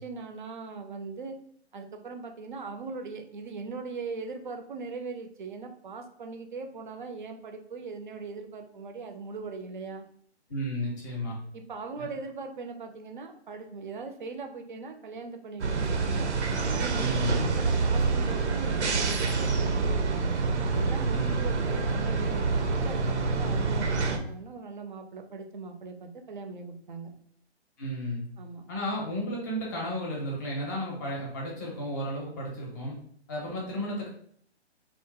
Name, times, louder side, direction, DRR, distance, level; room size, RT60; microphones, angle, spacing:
voice 1, 0.0-1.4 1.7-10.0 11.5-16.3 16.7-20.4 20.7-27.1 28.4-28.6, right 4 dB, 45° right, 5 dB, 0.5 m, -40 dB
voice 2, 10.5-11.4 12.0-12.1 17.0-17.5 21.1-21.4 27.8-28.2 28.7-33.0 33.3-34.1, equal, 15° left, -2 dB, 0.6 m, -33 dB
sound 1, 15.6-24.2, right 4 dB, 85° right, 0.6 m, -27 dB
2.8 x 2.4 x 3.5 m, 0.62 s
figure-of-eight pair, 150°, 34 cm